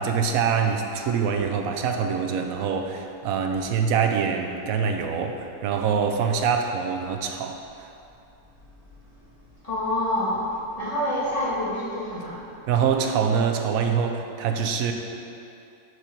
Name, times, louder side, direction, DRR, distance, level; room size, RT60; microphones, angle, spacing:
voice 1, 0.0-7.6 12.7-14.9, right 6 dB, 70° right, 4 dB, 0.8 m, -24 dB
voice 2, 9.6-10.5 10.8-12.4, left 1 dB, 20° left, -9 dB, 1.8 m, -27 dB
8.0 x 5.2 x 4.4 m, 2.6 s
omnidirectional pair, 2.0 m